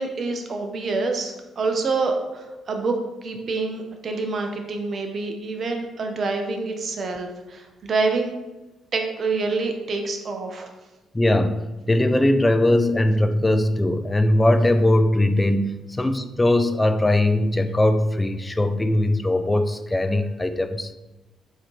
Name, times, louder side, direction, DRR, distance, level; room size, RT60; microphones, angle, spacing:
voice 1, 0.0-2.9 3.2-8.4 8.9-10.7, right 3 dB, 50° right, 4 dB, 0.7 m, -27 dB
voice 2, 11.1-11.6 11.9-20.9, left 1 dB, 15° left, 9 dB, 0.3 m, -20 dB
4.1 x 3.0 x 3.8 m, 1.1 s
cardioid pair, 90°, 0 cm